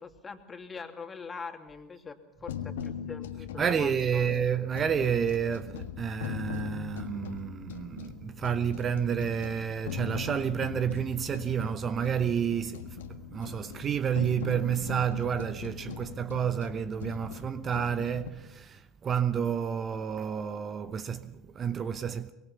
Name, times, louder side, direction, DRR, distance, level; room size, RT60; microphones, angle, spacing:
voice 1, 0.0-4.3, left 5 dB, 20° left, 2.8 m, -43 dB
sound 1, 2.5-18.3, left 8 dB, 75° left, 1.6 m, -40 dB
voice 2, 3.6-22.3, right 8 dB, 30° right, 0.9 m, -30 dB
24.0 x 22.0 x 5.6 m
hypercardioid pair, 75°, 0 cm